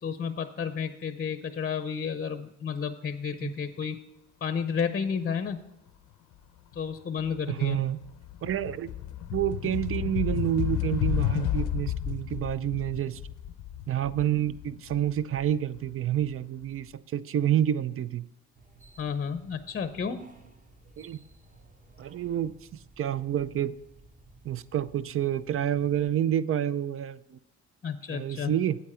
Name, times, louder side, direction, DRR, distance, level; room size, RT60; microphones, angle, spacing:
voice 1, 0.0-4.0 4.4-5.6 6.7-7.8 19.0-20.2 27.8-28.5, left 6 dB, 30° left, 10 dB, 0.6 m, -31 dB
sound 1, 6.7-7.0 7.3-16.2, left 11 dB, 90° left, 0.6 m, -32 dB
voice 2, 7.5-8.0 8.4-8.9 9.3-13.2 13.9-18.3 21.0-21.2 22.0-22.5 23.0-23.7 24.4-27.4 28.1-28.8, right 11 dB, 45° right, 17 dB, 0.5 m, -28 dB
sound 2, 18.5-26.1, right 2 dB, 25° right, 1.2 m, -55 dB
8.5 x 8.3 x 4.3 m, 0.91 s
cardioid pair, 90°, 30 cm